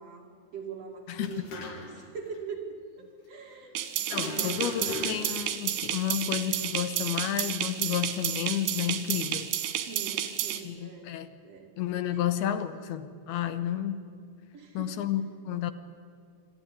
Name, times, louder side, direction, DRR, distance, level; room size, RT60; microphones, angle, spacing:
voice 1, 0.0-3.9 4.1-5.1 9.9-11.2 11.4-11.7 12.1-12.3 14.5-15.0, right 5 dB, 45° right, 0 dB, 3.1 m, -42 dB
sound 1, 1.2-2.1 2.3-2.4 4.1-5.4, left 3 dB, 60° left, 3.3 m, -39 dB
sound 2, 3.8-10.6, right 11 dB, 85° right, 3.3 m, -31 dB
voice 2, 4.0-9.5 10.6-11.3 11.8-14.1 14.7-15.7, left 10 dB, 85° left, 12 dB, 2.8 m, -31 dB
26.0 x 13.0 x 9.9 m, 2.2 s
omnidirectional pair, 4.5 m